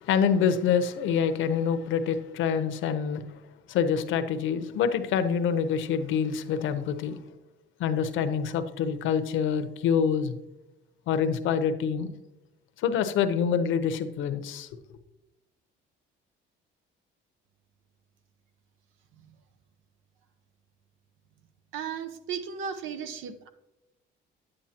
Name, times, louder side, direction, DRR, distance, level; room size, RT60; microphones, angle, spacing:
voice 1, 0.0-3.2 3.7-7.2 7.8-10.4 11.1-12.1 12.8-14.7, left 7 dB, 75° left, 10 dB, 0.8 m, -26 dB
voice 2, 21.7-23.5, right 7 dB, 80° right, 10 dB, 0.8 m, -35 dB
10.0 x 8.8 x 2.9 m, 0.99 s
cardioid pair, 135°, 20 cm